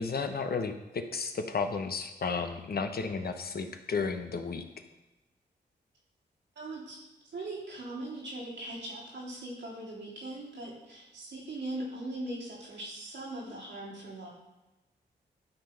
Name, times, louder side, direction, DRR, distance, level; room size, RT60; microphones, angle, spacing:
voice 1, 0.0-4.6, left 4 dB, 55° left, 7 dB, 0.9 m, -33 dB
voice 2, 6.5-7.0 7.2-14.3, right 1 dB, 80° right, -6 dB, 3.3 m, -40 dB
11.5 x 3.9 x 5.2 m, 1.0 s
supercardioid pair, 45°, 19 cm